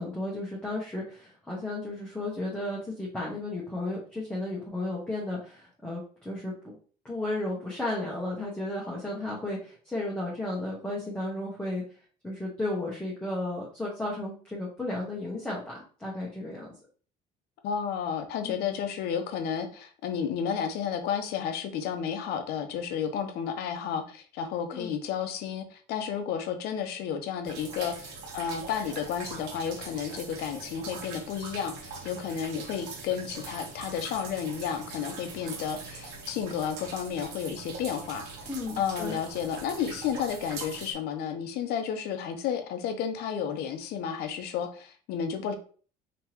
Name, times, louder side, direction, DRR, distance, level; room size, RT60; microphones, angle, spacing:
voice 1, 0.0-6.7 7.0-11.8 12.2-16.7 18.4-18.6 24.7-24.9 38.5-39.2, left 2 dB, 5° left, -4 dB, 1.0 m, -34 dB
voice 2, 17.6-38.3 38.8-45.5, left 7 dB, 75° left, 7 dB, 0.7 m, -32 dB
sound 1, 27.4-40.9, right 4 dB, 85° right, 1.0 m, -42 dB
3.5 x 2.9 x 2.9 m, 0.41 s
cardioid pair, 105°, 17 cm